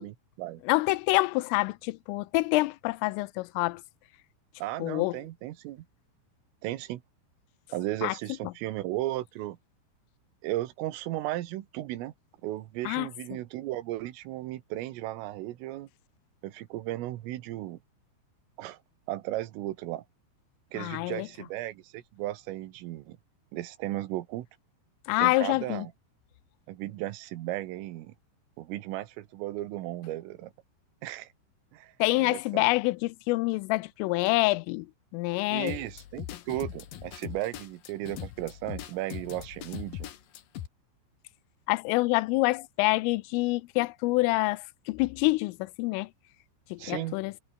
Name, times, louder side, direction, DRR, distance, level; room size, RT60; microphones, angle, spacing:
voice 1, 0.0-0.6 4.6-5.9 6.6-7.0 7.7-9.6 10.4-12.1 12.4-15.9 16.4-17.8 18.6-18.8 19.1-20.0 20.7-23.2 23.5-24.5 25.2-25.9 26.7-28.1 28.6-30.5 31.0-31.3 31.7-32.7 35.5-40.1 46.8-47.2, right 15 dB, 85° right, 4.0 m, -35 dB
voice 2, 0.7-3.8 4.8-5.1 8.0-8.1 12.9-13.1 20.8-21.3 25.1-25.9 32.0-34.9 35.1-35.8 41.7-46.1 46.7-47.3, left 22 dB, 85° left, 3.2 m, -26 dB
sound 1, 35.7-40.7, left 11 dB, 60° left, 2.6 m, -40 dB
omnidirectional pair, 5.8 m